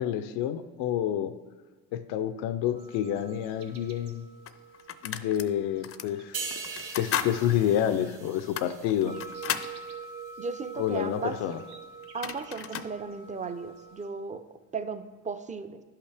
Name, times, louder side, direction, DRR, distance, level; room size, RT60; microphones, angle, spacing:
voice 1, 0.0-1.3 1.9-4.2 5.0-6.4 7.0-9.2 10.8-11.6, left 10 dB, 80° left, 11 dB, 0.5 m, -28 dB
sound 1, 2.7-14.1, right 5 dB, 90° right, 1.0 m, -46 dB
sound 2, 3.7-3.8 4.5-5.5 5.8-6.1 6.6-7.3 7.7-7.8 8.4-9.7 11.7-11.8 12.0-12.9, left 9 dB, 35° left, 0.5 m, -34 dB
sound 3, 6.3-9.9 10.3-10.5, right 4 dB, 65° right, 1.8 m, -41 dB
voice 2, 10.4-11.4 12.1-15.8, right 5 dB, 20° right, 10 dB, 0.5 m, -36 dB
11.0 x 5.7 x 3.4 m, 1.3 s
supercardioid pair, 80°, 39 cm